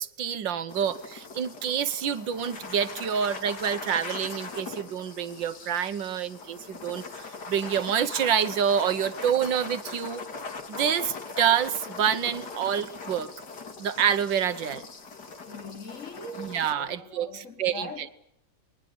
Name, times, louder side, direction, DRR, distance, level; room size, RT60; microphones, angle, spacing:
voice 1, 0.0-10.2 10.7-13.3 13.8-14.8 16.4-17.9, right 8 dB, 70° right, 1.8 m, -27 dB
sound 1, 0.7-16.7, left 4 dB, 55° left, 3.0 m, -40 dB
voice 2, 15.5-18.1, left 1 dB, 40° left, 3.2 m, -42 dB
27.5 x 22.0 x 6.9 m
omnidirectional pair, 2.1 m